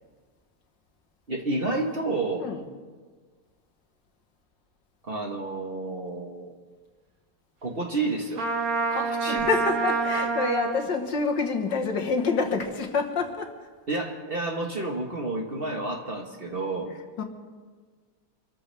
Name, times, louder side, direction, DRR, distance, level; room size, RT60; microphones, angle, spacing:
voice 1, 1.3-2.5 5.0-6.5 7.6-8.5 8.9-9.5 13.9-16.9, right 2 dB, 35° right, 1 dB, 1.5 m, -30 dB
Trumpet, 8.4-10.9, right 4 dB, 55° right, 1.5 m, -27 dB
voice 2, 8.9-13.5 17.2-17.3, left 4 dB, 75° left, 3 dB, 2.1 m, -27 dB
26.0 x 14.0 x 3.5 m, 1.5 s
omnidirectional pair, 2.0 m